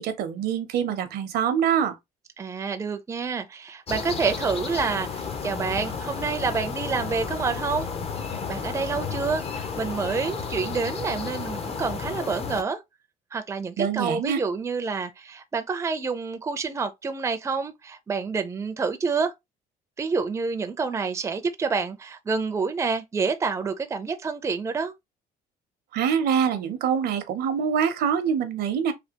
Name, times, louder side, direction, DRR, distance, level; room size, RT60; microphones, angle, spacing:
voice 1, 0.0-2.0 13.8-14.4 25.9-28.9, right 8 dB, 70° right, 0.7 m, -25 dB
voice 2, 2.4-7.9 8.3-12.8 13.3-19.3 20.0-24.9, right 4 dB, 15° right, 0.4 m, -28 dB
sound 1, 3.9-12.6, left 5 dB, 35° left, 0.6 m, -32 dB
3.3 x 2.3 x 2.8 m
cardioid pair, 110°, 17 cm